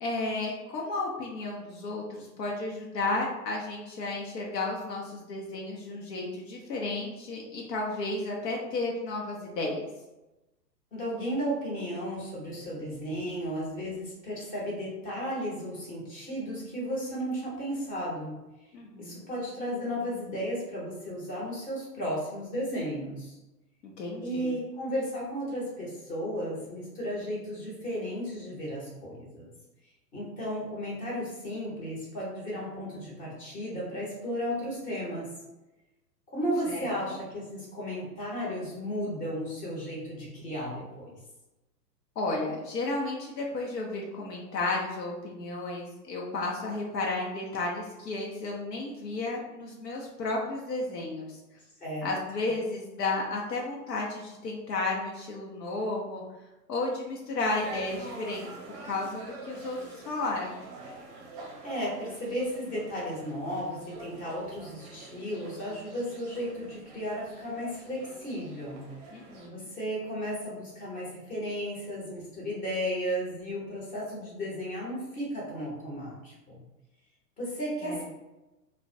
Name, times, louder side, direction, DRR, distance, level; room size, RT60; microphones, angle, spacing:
voice 1, 0.0-9.8 18.7-19.3 23.8-24.5 36.7-37.2 42.2-51.4 52.0-56.2 56.7-60.6 69.1-69.7 77.8-78.0, left 2 dB, 80° left, -2 dB, 0.7 m, -33 dB
voice 2, 10.9-18.3 19.0-23.4 24.2-29.5 30.1-35.3 36.3-41.1 51.8-52.1 61.6-68.9 69.5-76.6 77.4-78.0, equal, 15° left, -5 dB, 0.7 m, -34 dB
sound 1, 57.5-69.5, right 2 dB, 40° right, 0.5 m, -46 dB
2.2 x 2.1 x 2.6 m, 1.0 s
hypercardioid pair, 115°, 49 cm